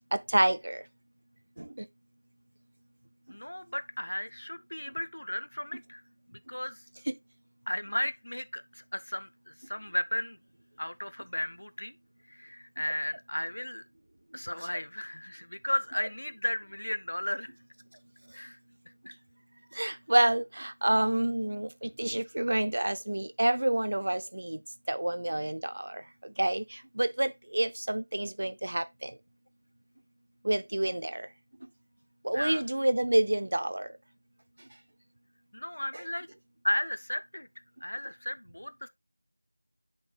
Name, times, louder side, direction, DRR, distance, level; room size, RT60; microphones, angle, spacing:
voice 1, 0.1-0.8 1.6-1.9 7.1-7.2 19.7-24.6 24.9-29.2 30.4-31.3 32.2-33.9, right 1 dB, 40° right, 0.4 m, -28 dB
voice 2, 3.3-6.0 6.3-6.8 7.7-10.4 10.8-11.9 12.3-13.8 14.3-17.5 18.3-18.6 19.1-19.2 32.3-32.7 35.5-36.3 36.6-37.5 37.8-38.9, left 1 dB, 55° left, 0.5 m, -34 dB
11.0 x 3.8 x 2.3 m
figure-of-eight pair, 175°, 0 cm